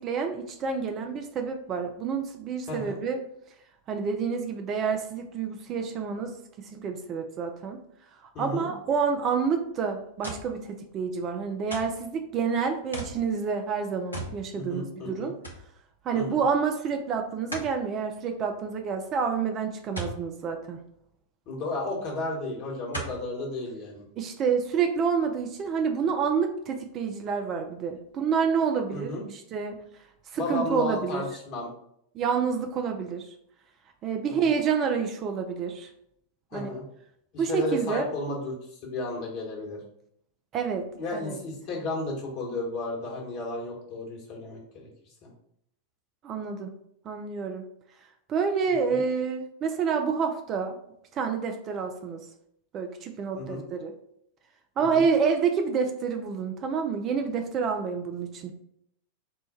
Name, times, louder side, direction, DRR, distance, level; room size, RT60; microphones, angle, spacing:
voice 1, 0.0-3.2 3.9-7.8 8.4-15.3 16.0-20.8 24.2-29.8 30.3-31.2 32.1-33.3 34.0-35.9 36.5-36.7 37.4-38.1 40.5-40.9 41.1-41.4 46.2-46.7 47.0-47.6 48.3-50.8 51.1-52.3 52.7-53.9 54.8-58.5, right 6 dB, 30° right, 5 dB, 0.4 m, -28 dB
voice 2, 2.7-3.0 8.3-8.7 14.5-15.3 16.1-16.4 21.5-24.0 28.9-29.2 30.3-31.7 34.3-34.5 36.5-36.8 37.3-39.8 40.9-44.9 45.2-45.3 48.9-49.0 53.3-53.6 54.9-55.0, left 2 dB, 40° left, -2 dB, 1.3 m, -33 dB
sound 1, 10.2-10.6 11.7-12.0 12.9-13.2 14.1-14.4 14.8-14.9 15.4-15.7 17.5-17.7 19.9-20.2 21.7-21.8 22.9-23.2 23.9-24.0, right 1 dB, 80° left, 0.7 m, -36 dB
4.4 x 2.2 x 4.1 m, 0.74 s
figure-of-eight pair, 90°, 0 cm